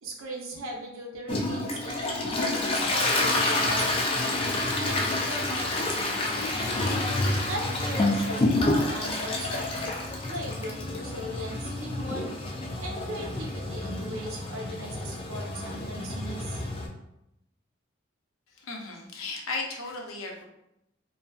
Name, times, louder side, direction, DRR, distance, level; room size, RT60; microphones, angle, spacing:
voice 1, 0.0-7.0 7.5-10.0 10.3-12.2 12.8-16.6, right 1 dB, 80° right, 0 dB, 0.6 m, -38 dB
Toilet flush, 1.3-16.9, left 2 dB, 25° left, 0.3 m, -28 dB
voice 2, 18.6-20.4, left 3 dB, 85° left, 0 dB, 0.6 m, -35 dB
2.6 x 2.3 x 2.3 m, 0.84 s
head